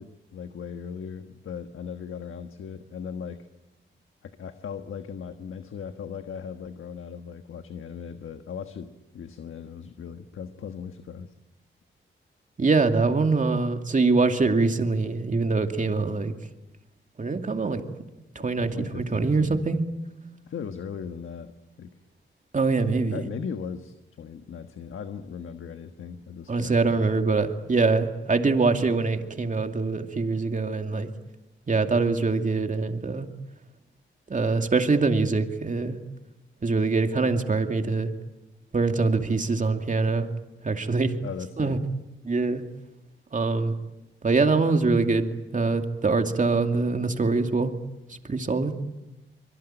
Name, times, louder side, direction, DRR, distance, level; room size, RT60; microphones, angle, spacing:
voice 1, 0.0-3.5 4.2-11.3 18.7-19.6 20.5-21.5 21.8-21.9 23.1-27.2 41.2-41.8, left 7 dB, 80° left, 8 dB, 1.4 m, -38 dB
voice 2, 12.6-16.3 17.2-17.8 18.3-19.8 22.5-23.3 26.5-31.1 31.7-33.3 34.3-36.0 36.6-38.1 38.7-40.3 40.6-41.1 41.6-41.8 42.2-42.6 43.3-43.7 44.2-45.3 45.5-47.7 48.1-48.7, right 3 dB, 40° right, 6 dB, 2.5 m, -24 dB
25.5 x 23.0 x 9.0 m, 0.99 s
cardioid pair, 80°, 21 cm